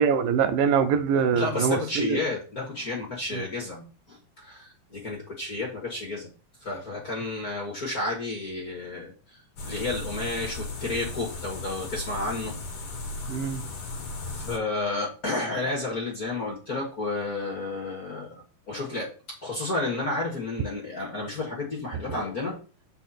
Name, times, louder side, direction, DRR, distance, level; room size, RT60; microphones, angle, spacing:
voice 1, 0.0-2.2 3.3-3.4 13.3-13.6, right 7 dB, 80° right, 2.4 m, -24 dB
voice 2, 1.1-6.3 6.6-12.5 14.3-22.6, left 2 dB, 30° left, 1.9 m, -31 dB
sound 1, 9.6-14.6, left 2 dB, 50° left, 1.8 m, -36 dB
8.3 x 5.5 x 4.3 m
omnidirectional pair, 4.1 m